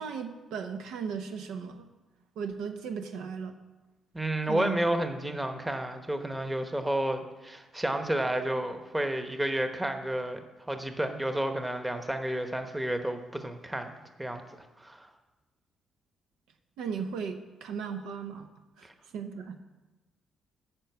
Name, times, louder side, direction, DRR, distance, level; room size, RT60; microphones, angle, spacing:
voice 1, 0.0-1.9 2.4-3.6 4.5-4.8 16.8-18.5 18.8-18.9 19.1-19.6, right 6 dB, 85° right, 6 dB, 0.8 m, -36 dB
voice 2, 4.1-13.9 14.2-14.4 14.8-15.1, right 1 dB, 10° right, 6 dB, 1.0 m, -31 dB
9.1 x 5.4 x 8.0 m, 1.2 s
cardioid pair, 90°, 0 cm